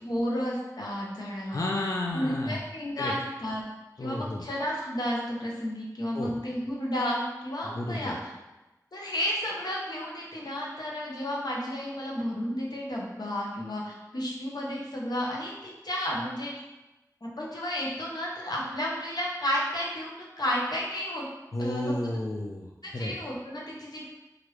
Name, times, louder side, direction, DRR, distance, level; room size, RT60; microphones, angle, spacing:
voice 1, 0.0-1.7 2.1-3.6 4.0-8.3 8.9-16.5 17.2-21.3 21.6-21.9 22.8-24.1, equal, 85° left, -3 dB, 0.7 m, -32 dB
voice 2, 1.5-2.6 3.0-3.1 4.0-4.5 6.1-6.4 7.6-8.2 21.5-23.2, left 1 dB, 55° left, -1 dB, 0.3 m, -32 dB
3.2 x 2.4 x 3.0 m, 1.0 s
wide cardioid pair, 50°, 7 cm